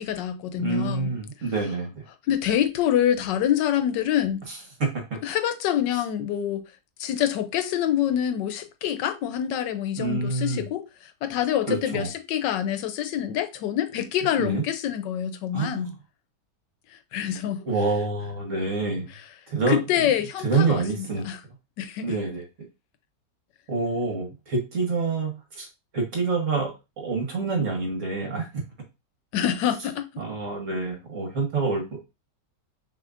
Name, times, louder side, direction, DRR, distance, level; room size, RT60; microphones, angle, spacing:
voice 1, 0.0-1.1 2.3-4.4 5.2-6.6 7.0-10.8 11.2-15.9 17.1-17.6 19.7-21.4 21.8-22.1 29.3-30.0, left 10 dB, 85° left, 1.3 m, -26 dB
voice 2, 0.6-2.1 4.5-4.9 10.0-10.7 11.7-12.1 14.3-14.6 15.5-15.9 17.7-19.1 19.5-19.8 20.4-21.2 22.0-22.5 23.7-25.7 25.9-28.6 30.2-32.0, right 3 dB, 50° right, 1.6 m, -27 dB
6.2 x 3.1 x 2.5 m
omnidirectional pair, 1.9 m